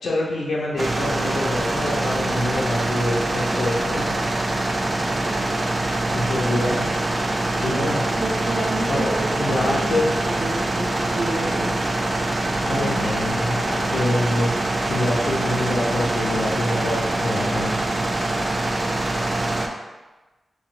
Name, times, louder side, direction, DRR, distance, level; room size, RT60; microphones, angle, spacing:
voice 1, 0.0-4.2 6.1-6.9 7.6-8.1 8.9-9.1 9.4-10.1 12.6-14.5 14.9-17.7, left 1 dB, 85° left, -5 dB, 0.7 m, -25 dB
sound 1, 0.8-19.7, right 2 dB, 30° right, 0.3 m, -24 dB
voice 2, 5.2-5.6 8.1-11.7 12.7-13.1, right 1 dB, 80° right, -9 dB, 0.9 m, -30 dB
3.0 x 2.8 x 3.8 m, 1.2 s
wide cardioid pair, 130°, 0 cm